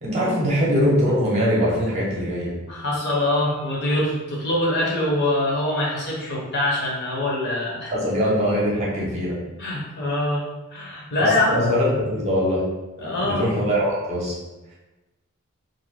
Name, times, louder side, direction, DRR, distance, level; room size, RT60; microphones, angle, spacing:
voice 1, 0.0-2.5 7.9-9.4 11.2-12.6 13.2-14.4, equal, 30° right, -5 dB, 0.7 m, -22 dB
voice 2, 2.7-7.9 9.6-10.4 10.7-11.6 13.0-13.5, left 1 dB, 50° left, -4 dB, 0.7 m, -24 dB
2.5 x 2.2 x 3.1 m, 1.1 s
head